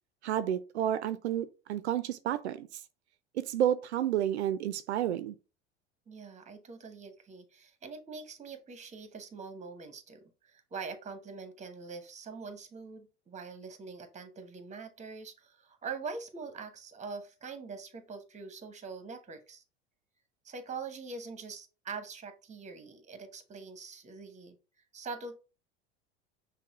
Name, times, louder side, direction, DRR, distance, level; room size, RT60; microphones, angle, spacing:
voice 1, 0.2-2.7 3.4-5.3, right 11 dB, 85° right, 0.5 m, -30 dB
voice 2, 6.1-19.6 20.4-24.6 24.9-25.4, right 4 dB, 20° right, 1.0 m, -43 dB
5.8 x 2.2 x 4.1 m
hypercardioid pair, 80°, 32 cm